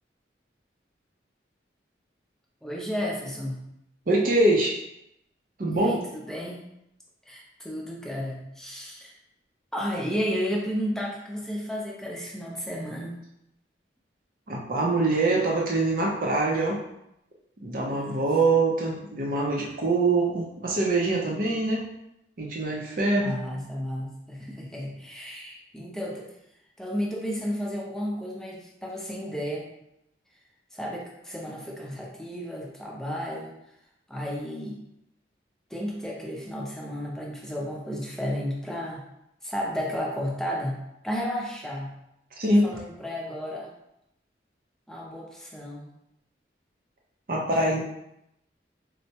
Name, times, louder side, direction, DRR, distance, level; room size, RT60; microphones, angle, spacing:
voice 1, 2.6-3.7 5.7-6.6 7.3-9.1 9.7-13.1 17.9-18.3 19.6-19.7 23.2-26.3 26.8-29.7 30.7-33.5 34.1-34.8 35.7-39.0 39.4-41.9 42.5-43.7 44.9-45.9 47.5-47.8, equal, 5° left, -4 dB, 0.5 m, -33 dB
voice 2, 4.1-4.8 5.6-5.9 14.5-16.8 17.6-21.8 22.4-23.4 42.4-42.7 47.3-47.8, right 2 dB, 50° right, -2 dB, 0.5 m, -24 dB
4.3 x 2.1 x 2.8 m, 0.82 s
head